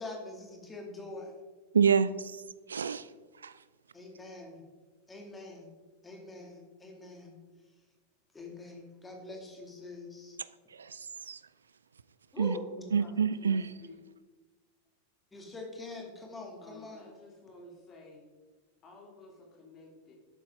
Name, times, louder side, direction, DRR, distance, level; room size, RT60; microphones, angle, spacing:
voice 1, 0.0-1.3 3.9-4.7 5.1-5.7 6.0-7.3 8.3-10.4 12.3-12.9 15.3-17.0, left 2 dB, 10° left, 2.3 m, -44 dB
voice 2, 1.7-2.4 2.7-3.1 3.4-3.5 10.8-11.4 12.4-12.6 12.9-13.6, right 6 dB, 70° right, 0.3 m, -27 dB
voice 3, 13.0-14.0 16.6-18.3 18.8-20.2, left 2 dB, 30° left, 2.9 m, -52 dB
11.5 x 8.3 x 3.7 m
figure-of-eight pair, 90°, 0 cm